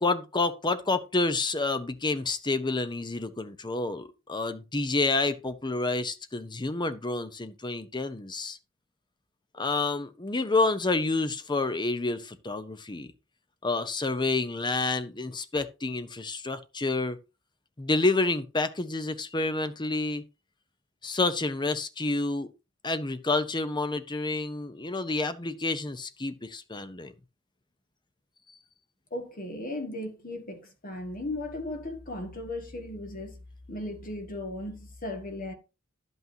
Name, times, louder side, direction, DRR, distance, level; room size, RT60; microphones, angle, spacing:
voice 1, 0.0-8.6 9.5-13.1 13.6-17.2 17.8-20.2 21.0-22.5 22.8-27.1, left 3 dB, 20° left, 0.7 m, -29 dB
voice 2, 29.1-33.4 33.7-35.5, left 1 dB, 45° left, 1.8 m, -36 dB
11.0 x 8.2 x 2.8 m
head